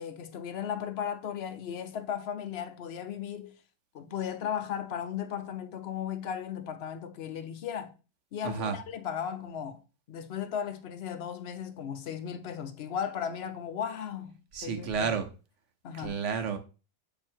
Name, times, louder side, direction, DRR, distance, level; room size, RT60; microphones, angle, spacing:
voice 1, 0.0-3.6 3.9-7.9 8.3-9.8 10.1-15.1 15.8-16.2, left 8 dB, 60° left, 0.9 m, -36 dB
voice 2, 8.4-8.8 14.5-15.3 16.0-16.6, right 6 dB, 70° right, 1.2 m, -31 dB
7.8 x 2.8 x 4.4 m
omnidirectional pair, 1.3 m